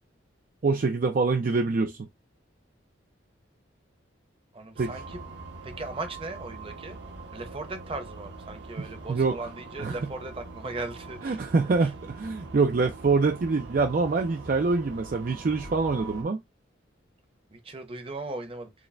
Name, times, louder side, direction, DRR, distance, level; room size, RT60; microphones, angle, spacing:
voice 1, 0.6-2.1 4.8-5.0 8.8-9.4 9.8-10.1 11.2-16.4, right 4 dB, 45° right, 0.4 m, -25 dB
voice 2, 4.5-5.2 5.6-7.0 7.3-11.4 17.5-18.7, right 2 dB, 30° right, 0.8 m, -38 dB
sound 1, 4.8-16.2, right 3 dB, 60° right, 0.8 m, -43 dB
4.8 x 2.1 x 3.2 m
head